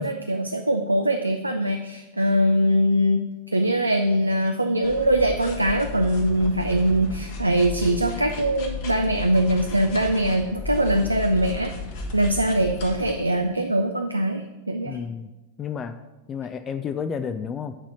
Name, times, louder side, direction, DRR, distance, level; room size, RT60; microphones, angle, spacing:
voice 1, 0.0-11.7 12.1-15.0, right 1 dB, 85° right, 6 dB, 0.5 m, -22 dB
sound 1, 4.8-13.1, left 3 dB, 50° left, 1.5 m, -34 dB
voice 2, 14.9-15.3 15.6-16.0 16.3-17.7, left 7 dB, 25° left, 10 dB, 0.4 m, -31 dB
8.8 x 4.2 x 7.3 m, 1.1 s
figure-of-eight pair, 90°, 0 cm